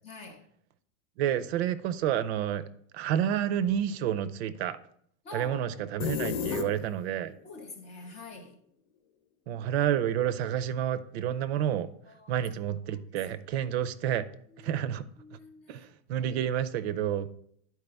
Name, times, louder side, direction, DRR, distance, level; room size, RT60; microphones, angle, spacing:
voice 1, 0.0-0.4 5.2-6.1 6.5-6.7 7.4-8.6 12.1-12.4 14.5-14.7 15.2-15.9, left 2 dB, 20° left, 0.4 m, -46 dB
voice 2, 1.2-2.6 2.9-4.8 5.3-7.3 9.5-11.9 12.3-14.3 14.6-15.0 15.7-17.3, right 10 dB, 60° right, 0.5 m, -29 dB
sound 1, 6.0-7.2, left 6 dB, 55° left, 0.9 m, -31 dB
10.5 x 4.6 x 3.4 m
supercardioid pair, 175°, 37 cm